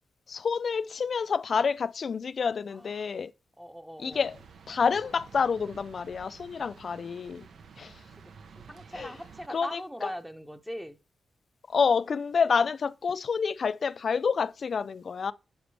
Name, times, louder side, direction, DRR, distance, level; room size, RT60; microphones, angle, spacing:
voice 1, 0.3-3.3 4.0-4.4 4.7-7.5 7.8-8.0 9.0-9.1 9.5-10.1 11.7-15.3, left 5 dB, 50° left, 0.3 m, -28 dB
voice 2, 3.6-4.2 8.7-11.0, equal, 5° right, 0.8 m, -40 dB
sound 1, 4.1-9.5, right 6 dB, 75° right, 0.8 m, -51 dB
10.0 x 7.0 x 3.3 m
wide cardioid pair, 155°, 0 cm